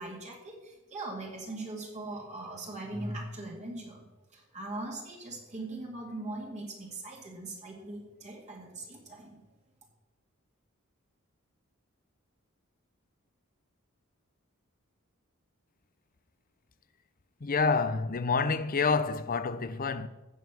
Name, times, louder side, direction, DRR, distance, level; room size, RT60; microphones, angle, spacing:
voice 1, 0.0-4.0 4.3-9.4, right 2 dB, 35° right, 2.2 m, -40 dB
voice 2, 17.4-20.1, left 4 dB, 40° left, 0.6 m, -28 dB
15.0 x 5.5 x 7.3 m
head